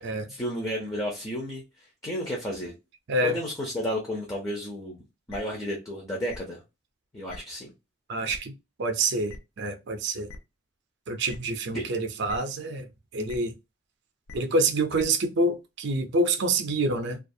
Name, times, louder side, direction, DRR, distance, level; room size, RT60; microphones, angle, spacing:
voice 1, 0.3-1.6 2.0-2.7 3.2-5.0 5.3-6.6 7.1-7.7 11.7-11.9, equal, 15° left, 0.5 m, -32 dB
sound 1, 5.3-5.4 6.3-6.4 7.3-7.4 8.3-8.4 9.3-9.4 10.3-10.4 11.3-11.4 12.3-12.4 13.3-13.4 14.3-14.4 14.9-15.0, left 3 dB, 75° left, 0.5 m, -42 dB
voice 2, 8.1-8.5 8.8-10.3 11.1-12.9 13.1-13.5 14.3-17.2, right 2 dB, 50° right, 0.5 m, -27 dB
2.4 x 2.3 x 2.6 m
head